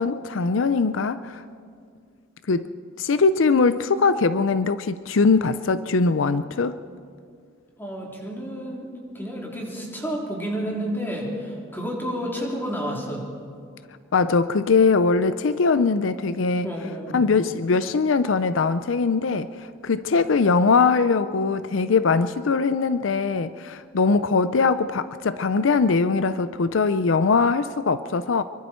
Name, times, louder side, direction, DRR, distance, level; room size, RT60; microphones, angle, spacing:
voice 1, 0.0-1.4 2.5-2.7 3.0-6.8 14.1-16.7 17.1-19.5 19.8-28.4, left 4 dB, 80° left, 13 dB, 0.5 m, -21 dB
voice 2, 7.8-13.3 16.6-17.2, equal, 10° left, -2 dB, 3.7 m, -30 dB
25.5 x 23.5 x 4.5 m, 2.2 s
head